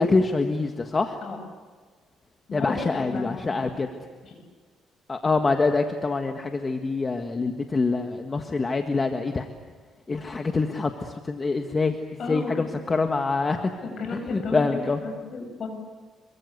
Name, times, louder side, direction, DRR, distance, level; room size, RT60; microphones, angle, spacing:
voice 1, 0.0-1.2 2.5-3.9 5.1-9.5 10.1-13.7 14.1-15.0, left 3 dB, 25° left, 5 dB, 1.6 m, -25 dB
voice 2, 2.5-3.5 4.2-4.3 12.2-12.6 13.8-15.7, left 4 dB, 50° left, 5 dB, 7.6 m, -33 dB
27.0 x 24.0 x 8.2 m, 1.5 s
cardioid pair, 115°, 0 cm